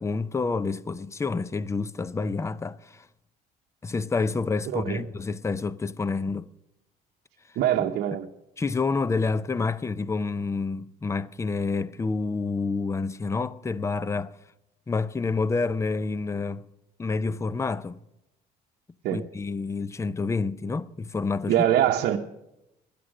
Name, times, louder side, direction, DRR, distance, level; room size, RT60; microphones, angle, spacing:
voice 1, 0.0-3.1 3.8-6.5 7.8-7.9 8.6-14.3 14.9-16.6 17.0-18.0 19.1-21.5, left 4 dB, 15° left, 0.5 m, -28 dB
voice 2, 4.7-5.0 7.6-8.3 19.0-19.2 21.5-22.2, right 11 dB, 75° right, 0.9 m, -23 dB
12.5 x 10.5 x 6.1 m
cardioid pair, 110°, 17 cm